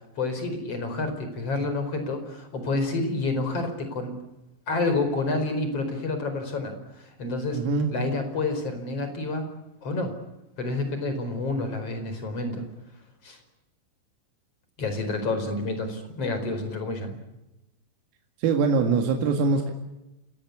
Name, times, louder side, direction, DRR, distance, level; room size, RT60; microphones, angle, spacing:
voice 1, 0.2-4.1 4.7-7.6 7.9-9.5 9.8-10.1 10.6-12.7 13.2-13.4 14.8-17.2, left 2 dB, 30° left, 8 dB, 5.1 m, -29 dB
voice 2, 7.5-7.9 18.4-19.7, right 4 dB, 85° right, 3 dB, 4.7 m, -23 dB
29.0 x 18.0 x 8.5 m, 0.97 s
omnidirectional pair, 5.8 m